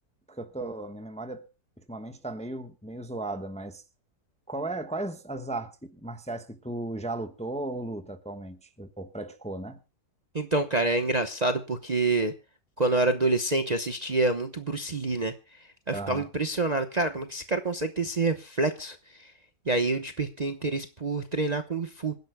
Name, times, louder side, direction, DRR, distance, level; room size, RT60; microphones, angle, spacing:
voice 1, 0.3-1.5 1.8-3.8 4.5-9.8 15.9-16.3, right 2 dB, 5° left, 0.9 m, -36 dB
voice 2, 10.3-12.3 12.8-15.3 15.9-19.3 19.7-22.1, right 2 dB, 30° right, 0.9 m, -27 dB
26.5 x 11.0 x 2.2 m
omnidirectional pair, 1.7 m